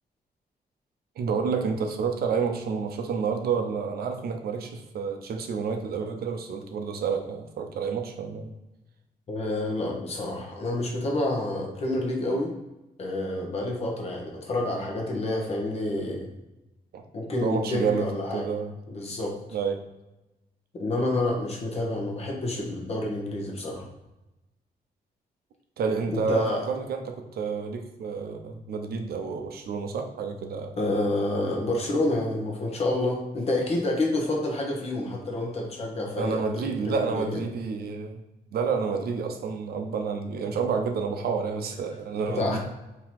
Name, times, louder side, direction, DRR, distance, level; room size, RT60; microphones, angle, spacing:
voice 1, 1.2-8.5 16.9-17.0 17.3-18.8 19.5-19.8 25.8-30.7 36.2-38.2 38.5-42.6, right 5 dB, 70° right, 5 dB, 0.6 m, -29 dB
voice 2, 9.3-12.5 13.0-16.3 17.1-18.4 18.9-19.4 20.7-23.8 26.1-26.6 30.8-37.4 42.4-42.6, left 2 dB, 40° left, 0 dB, 1.0 m, -28 dB
3.7 x 2.9 x 4.5 m, 1.0 s
wide cardioid pair, 170°, 16 cm